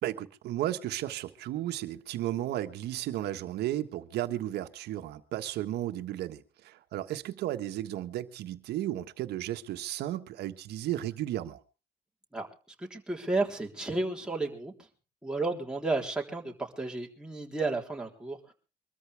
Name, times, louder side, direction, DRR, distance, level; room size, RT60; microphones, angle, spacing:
voice 1, 0.0-11.6, right 13 dB, 75° right, 1.5 m, -34 dB
voice 2, 12.8-14.7 15.2-18.5, right 3 dB, 5° right, 3.7 m, -32 dB
24.0 x 13.5 x 3.5 m
cardioid pair, 110°, 17 cm